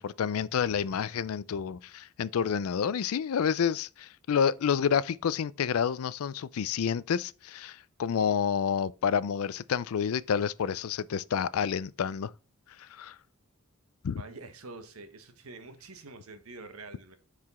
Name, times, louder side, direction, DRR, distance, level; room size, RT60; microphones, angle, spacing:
voice 1, 0.0-12.3 12.8-13.2 14.0-14.2, left 7 dB, 75° left, 0.4 m, -29 dB
voice 2, 14.2-17.2, right 3 dB, 80° right, 1.2 m, -46 dB
5.9 x 4.8 x 4.1 m
head